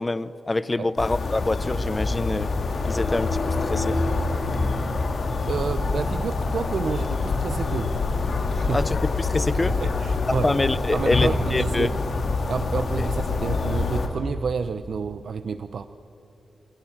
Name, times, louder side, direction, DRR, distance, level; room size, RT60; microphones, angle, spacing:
voice 1, 0.0-2.5 2.8-4.0 8.7-9.7 10.4-11.9 13.0-13.1, left 2 dB, 20° left, 16 dB, 0.5 m, -25 dB
Outdoor Ambience, 1.0-14.1, left 3 dB, 55° left, 2.7 m, -26 dB
voice 2, 5.5-7.9 8.5-8.8 9.7-10.5 10.9-11.9 12.5-15.9, right 5 dB, 65° right, 11 dB, 0.7 m, -29 dB
29.0 x 26.5 x 7.3 m, 2.9 s
wide cardioid pair, 150°, 0 cm